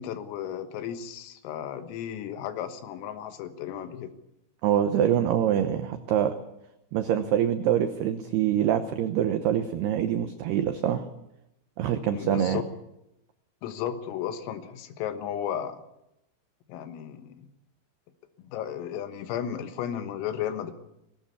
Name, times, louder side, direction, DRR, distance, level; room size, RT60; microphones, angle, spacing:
voice 1, 0.0-4.1 12.1-12.6 13.6-15.8 16.7-17.5 18.4-20.7, left 9 dB, 80° left, 9 dB, 4.0 m, -34 dB
voice 2, 4.6-6.3 6.9-11.1 11.8-12.6, right 10 dB, 85° right, 8 dB, 2.3 m, -25 dB
20.0 x 18.0 x 8.3 m, 0.85 s
omnidirectional pair, 6.0 m